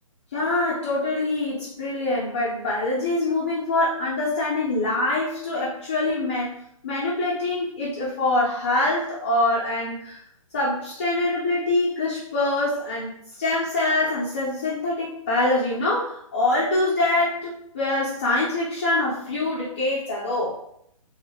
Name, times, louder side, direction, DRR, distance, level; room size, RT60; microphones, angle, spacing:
voice 1, 0.3-6.6 6.8-10.2 10.5-20.6, left 2 dB, 20° left, -8 dB, 0.4 m, -24 dB
3.1 x 2.5 x 2.7 m, 0.72 s
hypercardioid pair, 175°, 18 cm